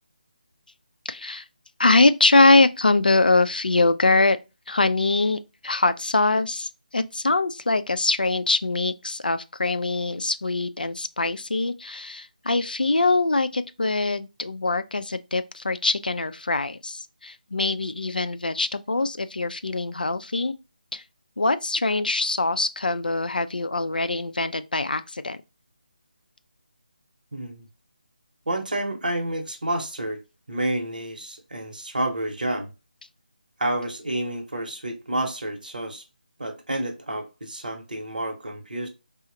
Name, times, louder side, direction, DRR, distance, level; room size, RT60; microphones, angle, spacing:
voice 1, 1.1-1.4 1.8-4.4 4.7-20.5 20.9-21.0 21.4-25.4, left 3 dB, 70° left, 0.3 m, -23 dB
voice 2, 27.3-27.6 28.5-30.2 30.5-32.7 33.6-36.0 36.4-38.9, right 1 dB, 65° right, 0.8 m, -29 dB
4.0 x 2.0 x 2.6 m
figure-of-eight pair, 155°, 5 cm